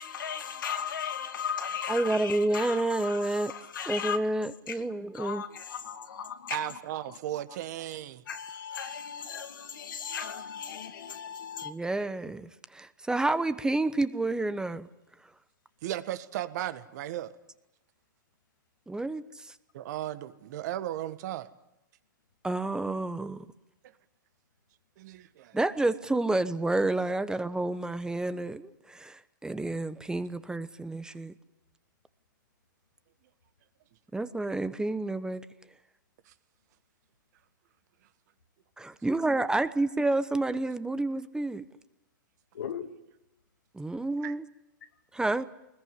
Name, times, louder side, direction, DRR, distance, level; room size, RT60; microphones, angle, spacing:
voice 1, 0.0-4.2 4.7-4.8 5.1-6.7 8.3-11.7 42.5-42.9, left 8 dB, 75° left, 2.6 m, -36 dB
voice 2, 1.9-3.5 3.9-5.4 11.6-14.9 18.9-19.5 22.4-23.4 25.5-31.3 34.1-35.4 38.8-41.7 43.7-44.4 45.1-45.4, right 2 dB, 5° right, 1.0 m, -29 dB
voice 3, 6.5-8.2 15.8-17.4 19.7-21.5 25.0-25.6 36.3-36.4 44.2-44.3, right 12 dB, 55° right, 1.6 m, -36 dB
22.5 x 20.5 x 9.7 m
hypercardioid pair, 115°, 11 cm